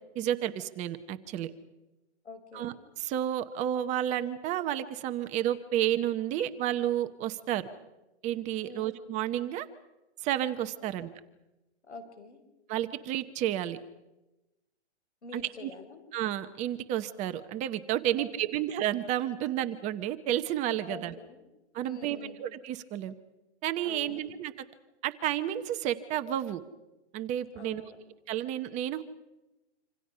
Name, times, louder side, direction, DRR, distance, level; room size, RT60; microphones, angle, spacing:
voice 1, 0.1-1.5 2.5-7.7 8.2-9.7 10.2-11.1 12.7-13.8 15.3-15.7 16.1-21.1 21.7-23.1 23.6-24.5 25.0-26.6 27.1-27.8 28.3-29.0, right 12 dB, 20° right, 10 dB, 0.9 m, -31 dB
voice 2, 2.2-2.8 8.6-9.0 10.8-10.9 11.9-12.4 15.2-16.0 18.2-18.3 20.9-21.4 21.8-22.4 23.8-24.2 27.5-28.0, left 3 dB, 90° left, 7 dB, 4.8 m, -45 dB
26.5 x 26.5 x 5.6 m, 1.0 s
hypercardioid pair, 145°, 34 cm